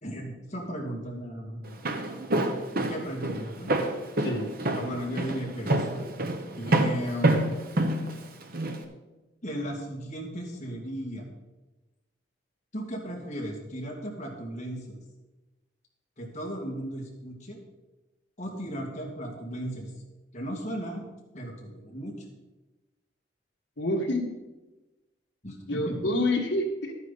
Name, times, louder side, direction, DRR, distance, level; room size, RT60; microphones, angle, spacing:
voice 1, 0.0-1.8 2.9-3.7 4.8-5.9 6.6-7.4 9.4-11.3 12.7-15.0 16.2-17.6 18.4-19.9 20.3-21.0 21.3-22.1 25.4-26.1, equal, 40° left, -1 dB, 2.4 m, -36 dB
Walk footsteps, 1.6-8.8, right 1 dB, 50° right, 1.0 m, -27 dB
voice 2, 23.8-24.3 25.7-26.9, left 1 dB, 75° left, 2 dB, 1.8 m, -27 dB
12.0 x 9.5 x 4.2 m, 1.1 s
head